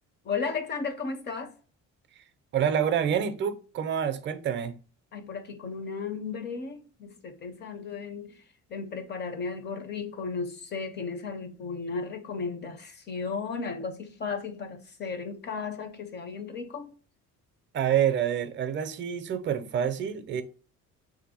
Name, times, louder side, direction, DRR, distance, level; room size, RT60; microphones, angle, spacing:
voice 1, 0.2-1.5 5.1-8.4 8.7-16.9, left 5 dB, 35° left, 0.5 m, -35 dB
voice 2, 2.5-4.7 17.7-20.4, right 9 dB, 35° right, 0.4 m, -27 dB
3.2 x 2.6 x 4.1 m
cardioid pair, 155°, 31 cm